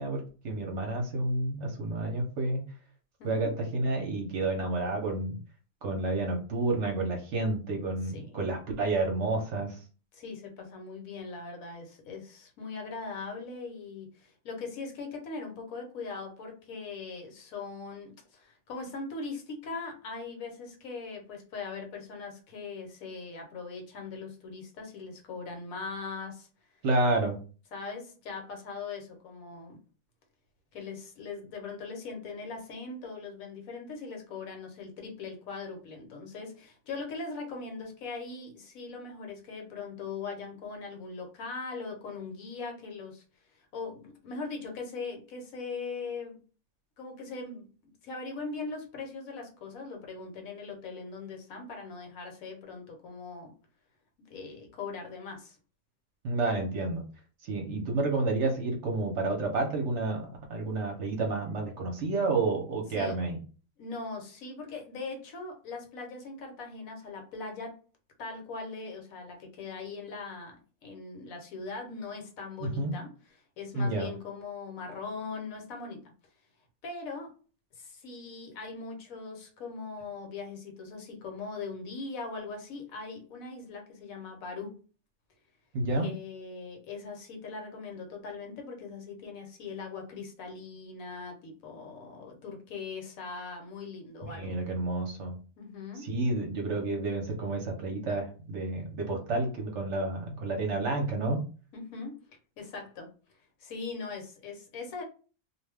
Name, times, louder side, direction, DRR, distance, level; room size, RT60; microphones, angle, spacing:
voice 1, 0.0-2.6 3.2-5.4 5.8-9.8 26.8-27.4 56.2-57.0 57.4-63.4 72.6-72.9 73.7-74.1 85.7-86.1 94.3-95.4 96.0-101.4, right 2 dB, 60° right, 1 dB, 0.9 m, -30 dB
voice 2, 3.2-3.5 8.1-8.4 10.1-26.5 27.7-29.8 30.7-43.2 43.6-46.4 47.0-47.7 48.0-53.5 54.3-55.6 62.9-63.2 63.8-67.8 68.2-70.6 70.8-73.1 73.6-76.1 76.8-77.3 77.7-84.8 86.0-94.6 95.6-96.1 101.7-102.2 102.6-103.1 103.6-105.0, left 4 dB, 70° left, 2 dB, 1.1 m, -40 dB
2.4 x 2.2 x 3.3 m, 0.37 s
omnidirectional pair, 1.6 m